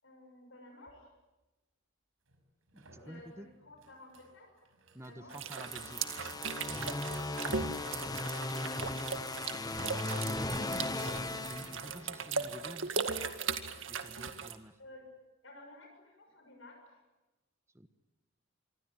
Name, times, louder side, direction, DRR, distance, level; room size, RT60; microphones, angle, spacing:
voice 1, 0.0-1.1 3.0-4.6 5.0-5.4 8.4-10.6 14.8-15.1 15.4-17.0, left 2 dB, 70° left, 3 dB, 6.8 m, -55 dB
sound 1, 0.9-1.0 2.3-11.4 14.8-14.9, right 3 dB, 90° right, 5.9 m, -61 dB
voice 2, 2.7-3.5 4.9-6.0 11.3-13.1 13.9-14.8 17.7-17.9, right 1 dB, 15° right, 10 dB, 1.1 m, -49 dB
sound 2, 5.3-14.5, right 5 dB, 70° right, 2.0 m, -38 dB
sound 3, 5.5-12.4, left 2 dB, 20° left, 1.1 m, -37 dB
26.0 x 24.5 x 9.3 m, 1.1 s
head